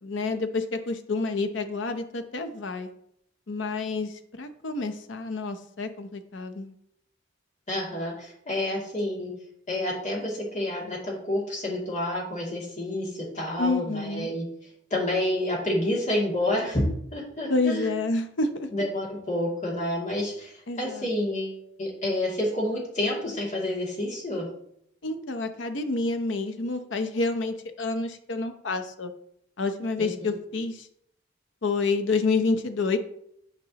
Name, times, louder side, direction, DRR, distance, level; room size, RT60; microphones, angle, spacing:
voice 1, 0.0-2.9 3.5-6.7 13.6-14.3 17.5-18.7 20.7-21.1 25.0-29.1 29.6-30.9 31.6-33.0, left 3 dB, 70° left, 8 dB, 0.7 m, -28 dB
voice 2, 7.7-9.3 9.7-14.5 14.9-16.8 17.1-17.9 18.7-24.5 30.0-30.3, left 1 dB, 40° left, -3 dB, 2.4 m, -29 dB
8.9 x 5.2 x 2.9 m, 0.71 s
head